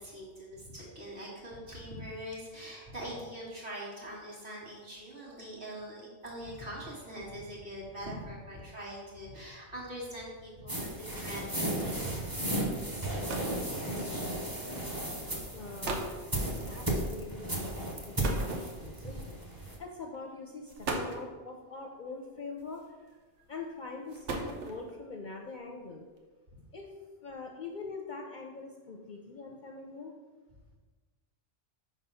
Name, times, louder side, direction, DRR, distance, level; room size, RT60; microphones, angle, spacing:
voice 1, 0.0-13.1 16.6-16.7 18.8-19.2 23.4-23.5, equal, 50° right, -6 dB, 1.9 m, -43 dB
sound 1, 10.7-19.8, right 1 dB, 20° right, 0.8 m, -34 dB
sound 2, 13.3-13.7 14.7-14.9 15.5-15.6 15.8-16.2 18.2-19.1 20.0-20.2 20.7-21.3 22.6-23.1 23.9-25.0, right 3 dB, 85° right, 1.1 m, -37 dB
voice 2, 15.5-16.1 16.6-22.8 23.5-26.0 26.7-26.9 27.2-30.1, left 4 dB, 55° left, 1 dB, 0.6 m, -43 dB
5.0 x 4.0 x 5.5 m, 1.3 s
omnidirectional pair, 1.2 m